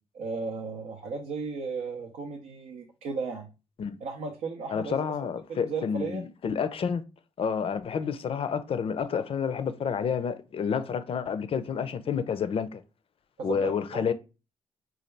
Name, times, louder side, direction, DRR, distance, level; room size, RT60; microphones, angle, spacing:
voice 1, 0.1-3.5 4.0-5.1 5.5-6.2 13.4-14.1, right 4 dB, 70° right, 0.6 m, -35 dB
voice 2, 4.7-7.0 7.4-12.8 13.4-14.1, left 6 dB, 50° left, 0.4 m, -29 dB
4.0 x 2.3 x 3.2 m
supercardioid pair, 50°, 12 cm